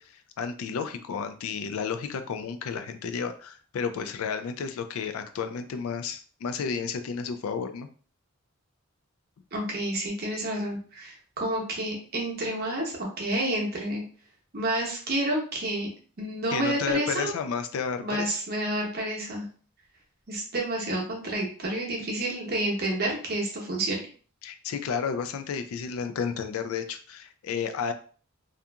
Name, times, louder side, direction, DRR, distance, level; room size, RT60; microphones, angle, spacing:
voice 1, 0.0-7.9 16.5-18.4 24.4-27.9, left 6 dB, 75° left, 9 dB, 0.3 m, -32 dB
voice 2, 9.5-14.0 14.5-15.9 16.2-17.3 18.0-19.5 20.3-24.1, right 1 dB, 45° right, -1 dB, 0.8 m, -29 dB
2.7 x 2.4 x 2.3 m, 0.42 s
head